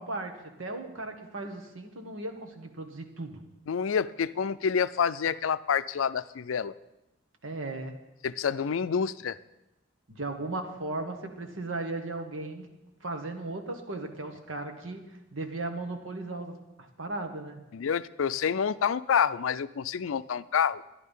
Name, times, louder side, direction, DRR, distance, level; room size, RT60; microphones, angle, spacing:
voice 1, 0.0-3.4 7.4-8.0 10.1-17.6, right 2 dB, 85° right, 5 dB, 1.6 m, -37 dB
voice 2, 3.7-6.7 8.2-9.4 17.7-20.8, left 7 dB, 85° left, 15 dB, 0.4 m, -28 dB
12.0 x 11.0 x 5.5 m, 0.95 s
head